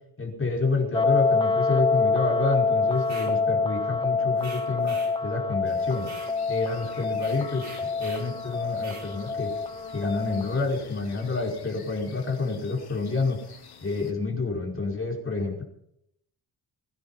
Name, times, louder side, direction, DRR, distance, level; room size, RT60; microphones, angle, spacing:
voice 1, 0.2-5.0 5.2-6.1 6.5-9.5 9.9-13.4 13.8-15.6, left 3 dB, 30° left, 0 dB, 5.2 m, -28 dB
sound 1, 0.9-10.6, left 4 dB, 10° left, 1.2 m, -26 dB
sound 2, 3.0-3.4 4.4-5.2 6.0-6.3 7.1-8.3 8.8-9.1, right 3 dB, 40° right, 6.8 m, -44 dB
sound 3, 5.6-14.1, left 6 dB, 70° left, 4.1 m, -49 dB
22.5 x 10.5 x 5.7 m, 0.74 s
cardioid pair, 100°, 40 cm